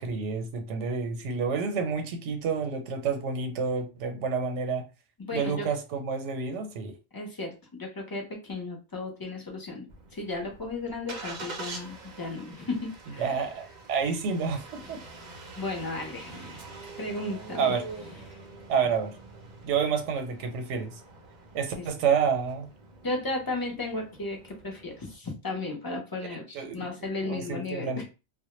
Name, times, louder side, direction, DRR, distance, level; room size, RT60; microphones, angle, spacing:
voice 1, 0.0-4.8 5.3-7.0 13.2-15.0 17.6-17.9 18.7-19.1 19.6-21.0 21.5-22.7 26.5-26.9 27.2-28.0, right 6 dB, 90° right, 0.9 m, -29 dB
voice 2, 5.2-5.7 7.1-9.9 10.1-13.4 14.8-14.9 15.6-16.6 17.0-17.7 21.8-21.9 23.0-28.0, left 2 dB, 25° left, 0.5 m, -35 dB
Engine starting, 9.9-25.2, right 3 dB, 50° right, 0.6 m, -45 dB
2.1 x 2.1 x 2.9 m
omnidirectional pair, 1.2 m